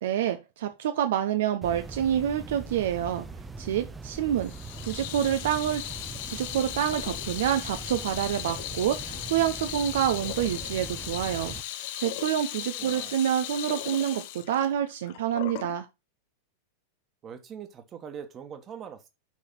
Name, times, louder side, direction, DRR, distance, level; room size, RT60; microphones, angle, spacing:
voice 1, 0.0-3.3 3.6-4.5 4.8-5.9 6.3-15.9, right 10 dB, 55° right, 0.8 m, -27 dB
sound 1, 1.6-11.6, right 3 dB, 10° right, 0.8 m, -41 dB
Water tap faucet / Sink (filling or washing), 4.4-15.8, left 13 dB, 50° left, 0.8 m, -37 dB
voice 2, 12.8-13.2 17.2-19.1, right 7 dB, 25° right, 1.6 m, -42 dB
6.3 x 5.8 x 5.8 m
figure-of-eight pair, 90°, 0 cm